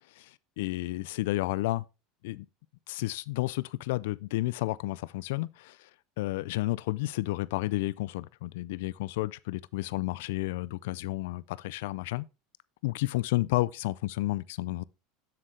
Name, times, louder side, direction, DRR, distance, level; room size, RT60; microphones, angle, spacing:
voice 1, 0.2-1.8 2.2-2.5 2.9-5.9 6.2-12.3 12.8-14.8, left 18 dB, 80° left, 0.3 m, -31 dB
7.4 x 6.6 x 3.2 m
supercardioid pair, 130°, 0 cm